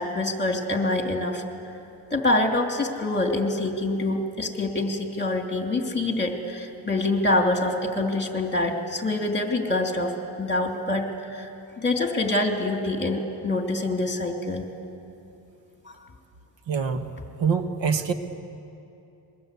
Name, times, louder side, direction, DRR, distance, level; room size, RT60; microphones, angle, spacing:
voice 1, 0.0-1.4 2.1-10.1 10.4-11.5 11.8-14.6 15.9-16.0, left 2 dB, 25° left, 3 dB, 2.9 m, -25 dB
voice 2, 16.7-17.1 17.4-18.1, right 6 dB, 80° right, 7 dB, 1.7 m, -24 dB
27.5 x 22.5 x 8.4 m, 2.8 s
cardioid pair, 115°, 44 cm